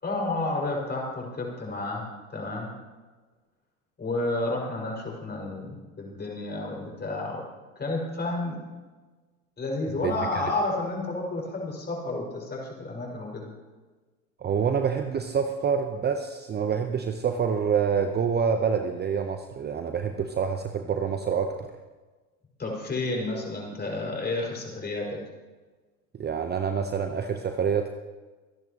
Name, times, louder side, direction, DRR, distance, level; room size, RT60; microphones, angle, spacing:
voice 1, 0.0-2.7 4.0-7.4 7.8-8.6 9.6-13.5 22.6-25.2, left 2 dB, 25° left, -1 dB, 5.4 m, -31 dB
voice 2, 14.4-21.7 26.1-27.9, right 6 dB, 25° right, 6 dB, 0.9 m, -27 dB
25.5 x 10.5 x 3.0 m, 1.3 s
hypercardioid pair, 85°, 43 cm